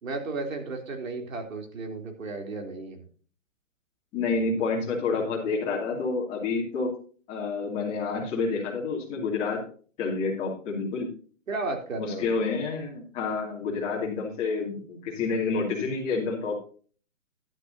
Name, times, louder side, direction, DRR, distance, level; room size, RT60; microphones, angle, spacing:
voice 1, 0.0-3.0 11.5-12.2, right 3 dB, 80° right, 3 dB, 3.3 m, -34 dB
voice 2, 4.1-6.9 7.3-9.6 10.0-11.1 12.0-16.6, left 4 dB, 15° left, -3 dB, 2.6 m, -29 dB
11.5 x 11.0 x 2.7 m, 0.41 s
hypercardioid pair, 175°, 40 cm